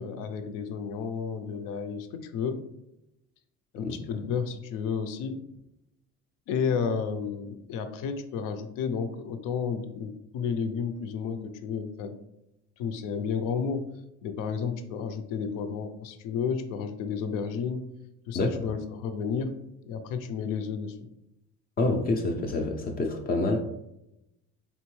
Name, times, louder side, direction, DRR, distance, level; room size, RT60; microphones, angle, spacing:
voice 1, 0.0-2.6 3.7-5.4 6.5-12.2 12.8-13.9 14.2-17.9 18.3-19.5 19.9-21.1, left 6 dB, 90° left, 9 dB, 0.6 m, -32 dB
voice 2, 3.8-4.2 18.3-18.5 21.8-23.6, left 2 dB, 30° left, 4 dB, 0.4 m, -27 dB
4.3 x 3.6 x 3.1 m, 0.86 s
cardioid pair, 175°, 31 cm